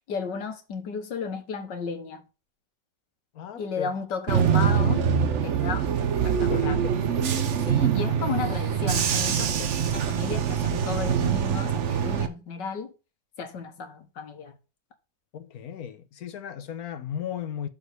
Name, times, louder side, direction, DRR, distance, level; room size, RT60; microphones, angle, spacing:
voice 1, 0.1-2.2 3.6-5.1 5.4-5.9 6.2-6.8 7.7-12.9 13.4-14.6, left 5 dB, 80° left, 1.9 m, -33 dB
voice 2, 3.3-3.9 6.4-6.9 7.2-7.5 7.8-8.0 15.3-17.7, left 9 dB, 60° left, 1.3 m, -36 dB
Bus / Engine, 4.3-12.3, right 8 dB, 55° right, 0.9 m, -24 dB
6.9 x 4.2 x 6.7 m
omnidirectional pair, 1.9 m